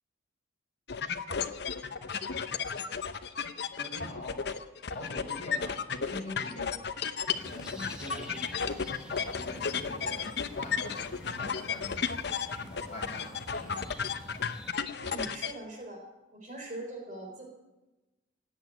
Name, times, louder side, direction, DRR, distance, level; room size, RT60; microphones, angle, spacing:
sound 1, 0.9-15.5, left 6 dB, 55° left, 0.8 m, -34 dB
voice 1, 3.8-4.3 4.9-6.7 7.4-8.4 9.1-12.0 12.5-13.9, left 2 dB, 35° left, -2 dB, 5.7 m, -43 dB
sound 2, 7.3-14.7, equal, 5° right, 1.6 m, -48 dB
voice 2, 15.0-16.1 16.3-17.4, right 1 dB, 40° right, 2 dB, 4.0 m, -42 dB
17.0 x 8.2 x 9.6 m, 1.0 s
head